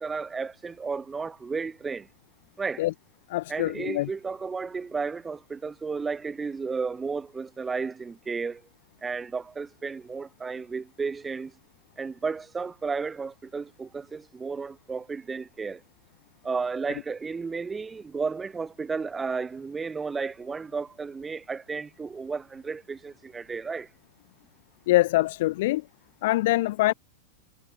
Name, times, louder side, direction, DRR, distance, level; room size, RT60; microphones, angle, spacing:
voice 1, 0.0-2.1 2.6-2.8 3.5-8.6 9.0-11.5 12.0-15.8 16.4-23.9, right 5 dB, 15° right, 2.0 m, -33 dB
voice 2, 3.3-4.1 24.9-25.8 26.2-26.9, left 18 dB, 55° left, 0.3 m, -24 dB
figure-of-eight pair, 90°, 0 cm